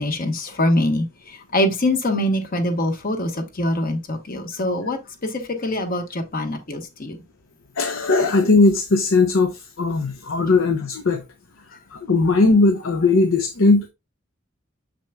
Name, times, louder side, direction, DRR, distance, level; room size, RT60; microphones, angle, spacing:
voice 1, 0.0-7.2, left 1 dB, 45° left, 1.2 m, -24 dB
voice 2, 7.8-11.2 11.9-13.9, left 3 dB, 80° left, 0.7 m, -18 dB
6.8 x 6.0 x 2.3 m
head